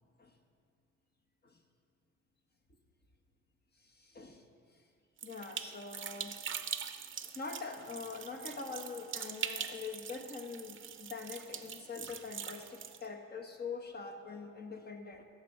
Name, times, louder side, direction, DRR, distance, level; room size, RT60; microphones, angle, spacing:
voice 1, 5.2-6.4 7.2-15.2, left 4 dB, 35° left, 3 dB, 1.4 m, -44 dB
sound 1, 5.2-13.0, right 7 dB, 40° right, 0.7 m, -43 dB
16.5 x 6.7 x 4.8 m, 2.2 s
cardioid pair, 90°, 30 cm